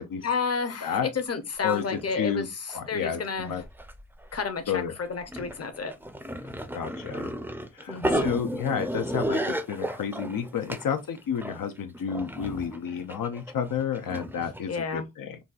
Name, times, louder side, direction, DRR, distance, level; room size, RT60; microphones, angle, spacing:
voice 1, 0.2-3.6 4.3-5.9 7.9-8.3 14.7-15.0, left 5 dB, 50° left, 0.6 m, -31 dB
sound 1, 1.2-1.3 1.5-2.2 2.7-3.0 3.3-4.4 5.0-14.6, right 1 dB, 5° right, 0.4 m, -33 dB
voice 2, 2.1-2.5 2.7-3.2 3.5-3.6 4.7-4.9 6.7-7.3 7.7-9.4 9.7-15.4, left 7 dB, 90° left, 0.5 m, -30 dB
3.9 x 2.3 x 2.3 m
wide cardioid pair, 90°, 33 cm